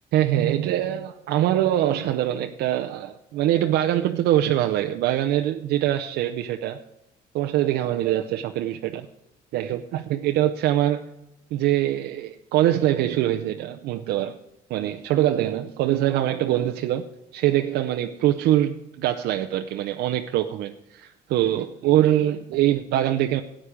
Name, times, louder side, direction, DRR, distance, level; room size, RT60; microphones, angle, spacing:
voice 1, 0.1-6.8 7.3-9.1 9.5-11.1 11.5-14.4 14.7-17.0 17.3-23.4, right 12 dB, 80° right, 5 dB, 0.7 m, -23 dB
13.0 x 8.8 x 5.0 m, 0.90 s
cardioid pair, 110°, 17 cm